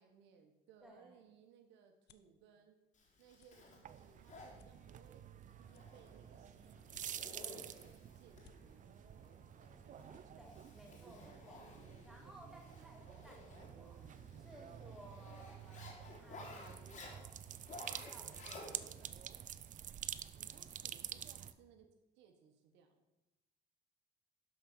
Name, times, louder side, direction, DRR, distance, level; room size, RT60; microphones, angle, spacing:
voice 1, 0.0-2.8 3.2-8.9 9.6-10.1 20.3-21.9 22.1-23.0, right 7 dB, 85° right, 5 dB, 1.4 m, -65 dB
sound 1, 0.8-2.4 2.9-3.1 3.3-3.5 4.0-4.1 4.5-5.3 5.7-6.4 6.8-7.5 7.9-8.0 8.3-8.6, left 11 dB, 70° left, 0.8 m, -68 dB
voice 2, 0.8-1.2 10.4-11.6 12.0-14.1 14.4-17.4 17.7-19.3, equal, ahead, -1 dB, 2.9 m, -59 dB
Zipper (clothing), 2.9-19.1, left 2 dB, 45° left, 3.5 m, -56 dB
sound 2, 3.8-21.5, right 10 dB, 45° right, 0.5 m, -49 dB
12.0 x 5.3 x 6.2 m, 0.97 s
cardioid pair, 100°, 18 cm